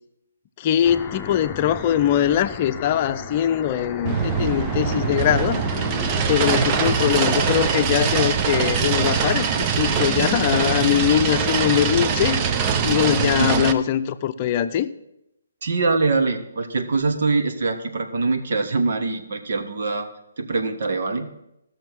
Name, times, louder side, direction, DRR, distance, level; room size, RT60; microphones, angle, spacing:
voice 1, 0.6-5.6 6.3-12.4 12.8-14.9, left 10 dB, 35° left, 11 dB, 0.7 m, -22 dB
sound 1, 0.8-7.9, left 6 dB, 15° left, 1.0 m, -34 dB
sound 2, 4.1-13.7, right 6 dB, 30° right, 0.8 m, -22 dB
voice 2, 15.6-20.1 20.4-21.3, right 3 dB, 60° right, 6 dB, 1.6 m, -23 dB
15.0 x 6.5 x 6.1 m, 0.83 s
figure-of-eight pair, 140°, 0 cm